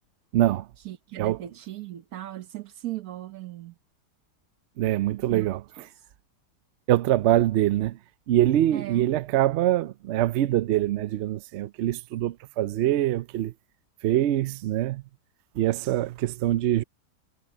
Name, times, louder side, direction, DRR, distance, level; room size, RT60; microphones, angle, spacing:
voice 1, 0.3-0.7 1.2-1.4 4.8-5.6 6.9-8.0 8.3-13.5 14.0-15.0 15.6-16.8, right 13 dB, 85° right, 0.6 m, -24 dB
voice 2, 0.8-3.8 5.3-5.9 8.7-9.0, right 14 dB, 65° right, 1.4 m, -38 dB
omnidirectional pair, 1.7 m